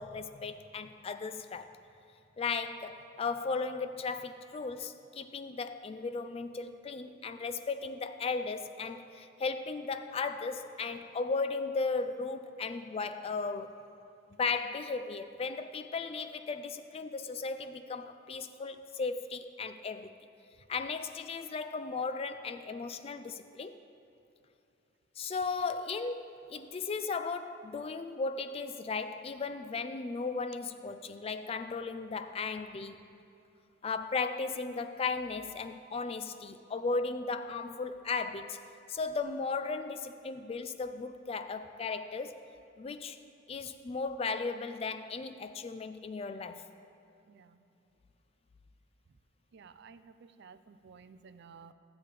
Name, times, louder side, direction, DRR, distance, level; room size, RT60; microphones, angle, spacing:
voice 1, 0.0-1.8 2.4-13.8 14.4-20.1 20.7-23.8 25.2-33.0 33.8-38.6 38.9-42.4 42.8-43.2 43.5-46.7, left 4 dB, 30° left, 10 dB, 0.3 m, -36 dB
voice 2, 47.3-47.6 49.5-51.7, right 5 dB, 60° right, 12 dB, 0.4 m, -54 dB
13.5 x 8.1 x 3.4 m, 2.7 s
head